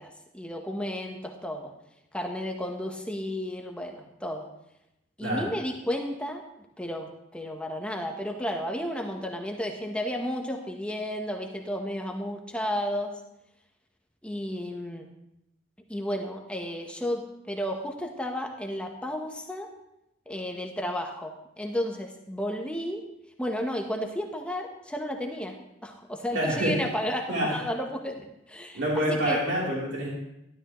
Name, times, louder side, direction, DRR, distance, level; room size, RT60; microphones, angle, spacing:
voice 1, 0.0-1.7 2.1-4.5 5.2-6.4 6.8-13.1 14.2-15.0 15.9-19.7 20.3-23.0 23.4-25.6 25.8-28.2 28.5-28.8 29.2-29.4, equal, 5° left, 2 dB, 0.9 m, -32 dB
voice 2, 26.3-26.8 27.3-27.6 28.7-30.1, equal, 60° right, -5 dB, 3.3 m, -27 dB
12.5 x 11.5 x 3.1 m, 0.85 s
head